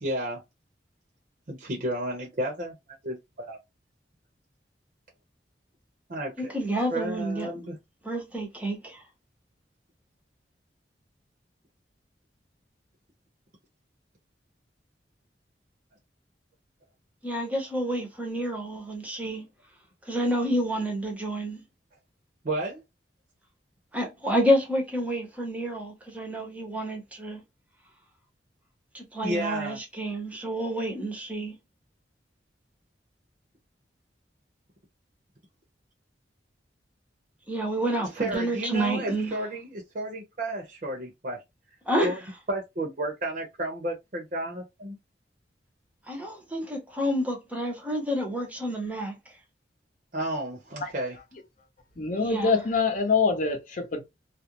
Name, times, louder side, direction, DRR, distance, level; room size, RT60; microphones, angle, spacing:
voice 1, 0.0-0.4 1.5-2.7 3.0-3.6 6.1-6.5 6.9-7.8 22.4-22.8 29.2-29.8 38.2-41.4 42.0-42.2 42.5-45.0 50.1-51.2, right 1 dB, 50° right, 0.7 m, -32 dB
voice 2, 6.4-7.5 8.0-9.0 17.2-19.4 20.1-21.6 23.9-27.4 28.9-31.5 37.5-39.4 41.9-42.1 46.1-49.1 52.2-52.6, equal, 10° right, 0.7 m, -29 dB
voice 3, 52.0-54.0, left 4 dB, 45° left, 0.7 m, -24 dB
2.4 x 2.0 x 2.9 m
head